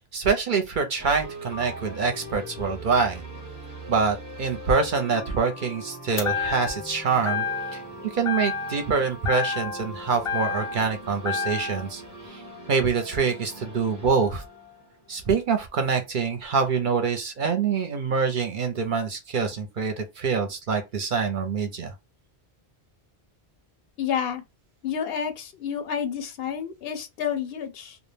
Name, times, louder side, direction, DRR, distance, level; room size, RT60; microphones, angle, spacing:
voice 1, 0.1-3.2 3.9-7.4 7.7-7.8 8.1-12.4 12.7-14.4 15.1-21.9, right 5 dB, 55° right, 0.6 m, -25 dB
sound 1, 1.0-15.8, equal, 20° right, 0.8 m, -41 dB
sound 2, 6.2-6.9 7.3-7.9 8.2-8.9 9.2-10.9 11.2-11.9, left 5 dB, 45° left, 0.4 m, -29 dB
voice 2, 24.0-24.4 24.8-28.0, left 8 dB, 70° left, 0.7 m, -29 dB
2.3 x 2.1 x 3.1 m
omnidirectional pair, 1.1 m